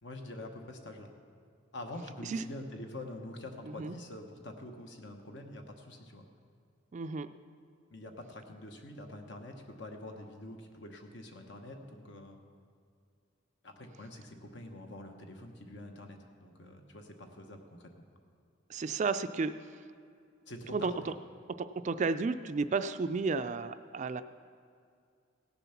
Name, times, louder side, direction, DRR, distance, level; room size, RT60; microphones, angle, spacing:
voice 1, 0.0-1.1 1.7-6.3 7.9-12.4 13.6-17.8 20.5-21.1, left 1 dB, 60° left, 4 dB, 1.2 m, -46 dB
voice 2, 6.9-7.3 18.7-19.5 20.7-21.1 21.6-24.2, right 4 dB, 40° right, 11 dB, 0.3 m, -32 dB
17.0 x 7.0 x 5.9 m, 2.3 s
head